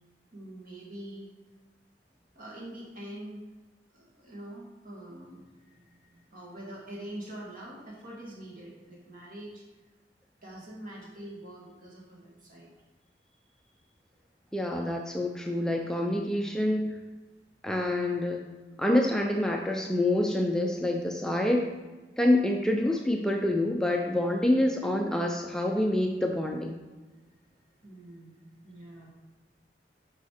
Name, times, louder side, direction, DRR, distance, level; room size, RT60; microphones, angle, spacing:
voice 1, 0.3-1.3 2.3-3.5 3.9-9.6 10.4-12.7 27.8-29.1, right 1 dB, 50° right, -4 dB, 2.4 m, -44 dB
voice 2, 14.5-17.0 17.6-18.4 18.8-21.7 22.2-26.8, left 1 dB, 5° left, 1 dB, 0.5 m, -27 dB
6.7 x 5.6 x 5.0 m, 1.2 s
head